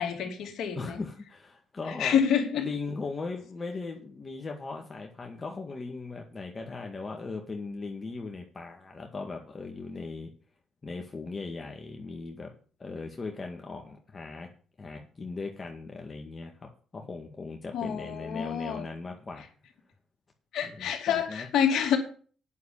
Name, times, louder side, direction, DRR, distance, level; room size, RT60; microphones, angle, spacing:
voice 1, 0.0-1.0 2.0-2.7 17.7-18.9 20.5-22.0, left 8 dB, 75° left, 4 dB, 2.9 m, -27 dB
voice 2, 0.8-2.2 2.5-10.3 10.8-12.5 12.8-14.5 14.8-19.5 20.6-21.5, left 3 dB, 35° left, 2 dB, 2.0 m, -38 dB
9.5 x 7.0 x 8.8 m, 0.42 s
supercardioid pair, 60°, 0 cm